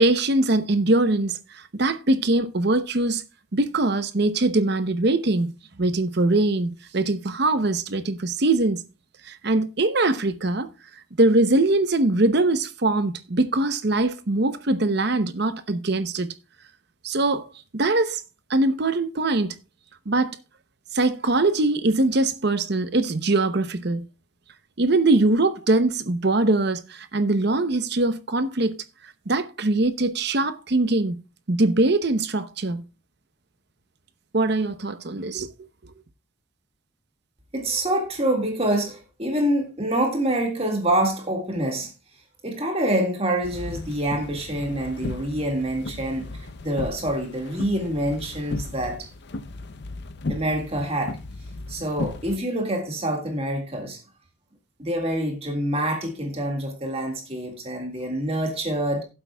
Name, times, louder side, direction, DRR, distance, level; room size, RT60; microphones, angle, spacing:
voice 1, 0.0-3.2 3.5-5.5 5.8-8.8 9.3-10.7 11.2-16.3 17.0-17.5 17.7-18.2 18.5-19.5 20.1-20.4 20.9-24.0 24.8-28.8 29.3-31.2 31.5-32.8 34.3-35.5, right 2 dB, 50° right, 0.8 m, -22 dB
voice 2, 37.5-41.9 42.4-49.1 50.3-51.2 51.7-54.0 54.8-59.0, right 1 dB, 30° right, 1.9 m, -26 dB
sound 1, 43.4-52.4, left 2 dB, 55° left, 0.6 m, -36 dB
16.0 x 7.8 x 2.3 m
head